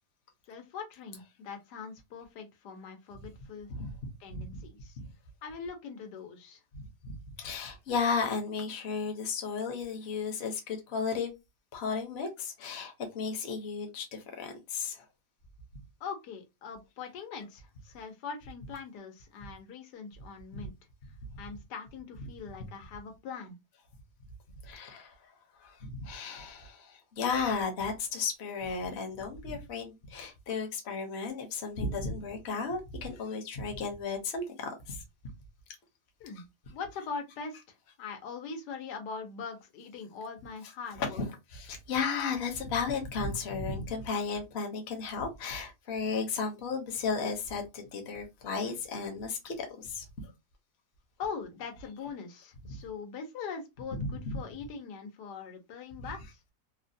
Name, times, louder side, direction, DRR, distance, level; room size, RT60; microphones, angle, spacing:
voice 1, 0.5-3.7 4.2-5.0 5.4-6.6 16.0-20.7 21.4-23.5 36.2-36.4 36.7-37.6 38.0-41.2 51.2-56.4, left 5 dB, 90° left, 1.3 m, -42 dB
voice 2, 6.7-7.1 7.4-11.3 11.7-15.0 20.5-20.7 24.6-25.1 25.6-35.0 41.0-41.3 41.5-50.0 52.6-52.7 53.9-54.4 56.0-56.1, left 5 dB, 50° left, 0.9 m, -34 dB
3.1 x 2.1 x 2.6 m
omnidirectional pair, 1.7 m